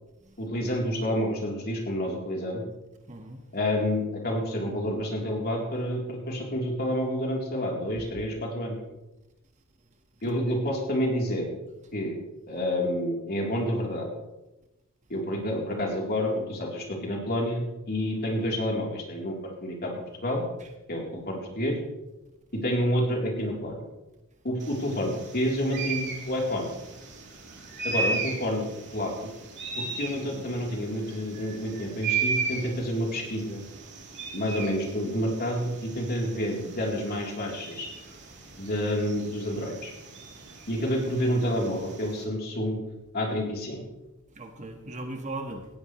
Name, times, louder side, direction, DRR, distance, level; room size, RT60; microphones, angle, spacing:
voice 1, 0.4-2.6 3.5-8.8 10.2-11.5 11.9-12.2 12.5-14.1 15.1-19.9 20.2-20.4 20.9-21.8 22.5-23.8 24.4-26.7 27.8-28.6 28.9-29.3 29.8-33.6 34.3-37.9 38.6-39.9 40.7-42.8 43.1-43.8, equal, 45° left, -1 dB, 3.8 m, -29 dB
voice 2, 3.1-3.4 10.2-10.3 18.2-18.4 25.1-25.2 44.3-45.7, right 2 dB, 35° right, 4 dB, 1.7 m, -38 dB
sound 1, 24.6-42.2, right 4 dB, 55° right, 3.3 m, -36 dB
18.0 x 15.5 x 3.3 m, 0.98 s
head